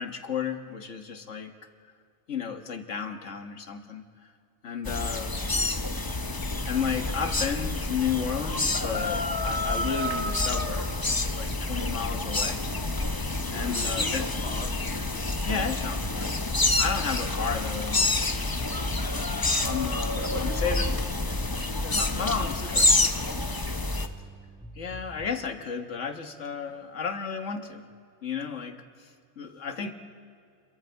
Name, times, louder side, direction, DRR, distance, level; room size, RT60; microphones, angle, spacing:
voice 1, 0.0-1.5 2.3-4.3 4.6-5.4 6.7-12.6 13.5-14.3 15.5-16.4 16.8-18.2 19.6-20.9 21.9-22.9 24.7-27.9 28.2-29.9, left 6 dB, 85° left, 5 dB, 1.7 m, -33 dB
voice 2, 4.6-5.2 13.5-14.1 14.4-15.8 20.1-21.1 21.8-23.5 29.8-29.9, left 3 dB, 70° left, 4 dB, 2.0 m, -43 dB
sound 1, 4.8-24.1, left 2 dB, 20° left, 0.8 m, -28 dB
sound 2, 9.2-13.5 13.8-18.1 18.3-22.6 22.9-25.5, left 1 dB, 5° right, 0.9 m, -46 dB
29.5 x 22.5 x 4.5 m, 2.3 s
omnidirectional pair, 1.2 m